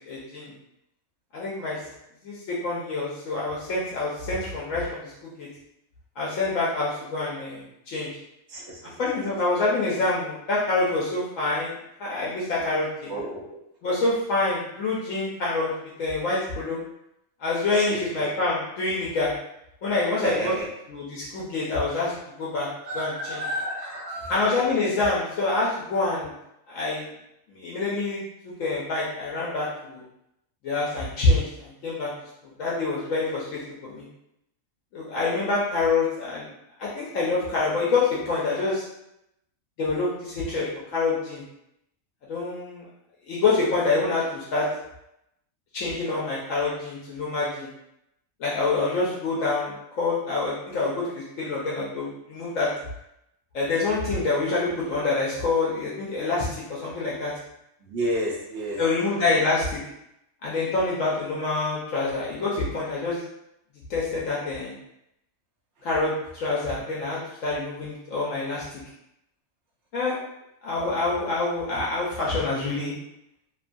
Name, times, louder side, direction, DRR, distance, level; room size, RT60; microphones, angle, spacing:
voice 1, 0.1-0.5 1.3-1.8 2.2-5.5 6.2-8.1 9.0-13.1 13.8-15.7 16.0-16.8 17.4-19.3 19.8-20.5 20.9-22.1 22.4-22.7 22.9-23.4 24.3-26.3 26.7-27.1 27.5-30.0 30.6-32.1 32.4-34.1 34.9-36.5 36.8-38.8 39.8-41.4 42.3-42.8 43.2-44.7 45.7-47.7 48.4-52.7 53.5-57.3 58.8-59.8 60.4-63.2 63.9-64.7 65.8-68.8 69.9-70.2 70.6-72.9, left 3 dB, 75° left, -6 dB, 1.0 m, -26 dB
voice 2, 8.5-9.0 13.1-13.6 17.7-18.3 20.2-20.7 22.8-24.4 57.8-58.8, right 1 dB, 65° right, -2 dB, 0.9 m, -31 dB
2.8 x 2.2 x 2.5 m, 0.82 s
omnidirectional pair, 1.4 m